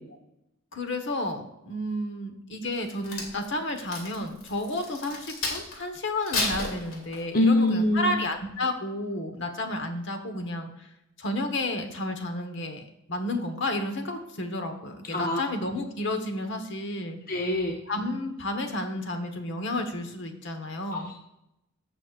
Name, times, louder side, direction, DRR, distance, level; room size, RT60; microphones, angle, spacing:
voice 1, 0.7-10.9 11.2-12.8 13.1-17.2 17.9-21.1, left 1 dB, 60° left, 6 dB, 1.2 m, -31 dB
Crack, 2.7-5.8 6.2-7.4 8.0-8.2, left 3 dB, 80° left, 2.5 m, -32 dB
voice 2, 7.3-8.2 15.1-15.4 17.3-17.8 20.9-21.2, left 1 dB, 45° left, 1 dB, 0.8 m, -24 dB
16.0 x 6.2 x 2.5 m, 0.85 s
head